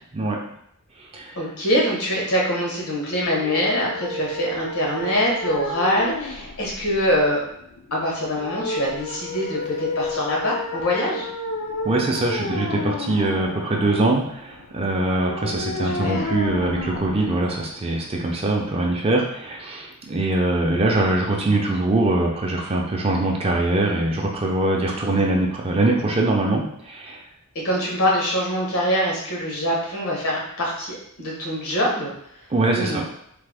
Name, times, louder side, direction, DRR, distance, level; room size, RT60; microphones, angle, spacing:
voice 1, 1.4-7.4 7.9-11.3 15.8-16.3 27.5-32.1 32.8-33.0, equal, 80° left, -3 dB, 1.1 m, -24 dB
sound 1, 3.2-18.2, left 2 dB, 65° left, 0.4 m, -32 dB
voice 2, 11.8-27.2 32.5-33.0, right 2 dB, 25° right, 0 dB, 0.4 m, -22 dB
3.3 x 2.0 x 3.4 m, 0.70 s
head